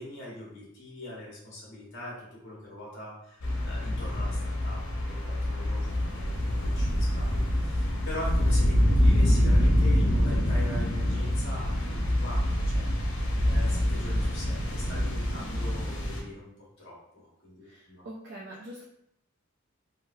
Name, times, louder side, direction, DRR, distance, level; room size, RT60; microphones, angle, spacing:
voice 1, 0.0-4.8 5.1-16.5 16.8-18.0, left 1 dB, 60° left, -5 dB, 1.2 m, -42 dB
sound 1, 3.4-16.2, left 1 dB, 90° left, 0.8 m, -26 dB
sound 2, 4.1-5.1 5.9-6.0 6.4-7.5 8.2-9.9 10.4-11.8 12.1-12.2 12.5-13.7, equal, 25° left, 0.7 m, -45 dB
voice 2, 17.7-18.8, right 1 dB, 55° right, -3 dB, 0.4 m, -44 dB
3.1 x 2.4 x 2.6 m, 0.77 s
head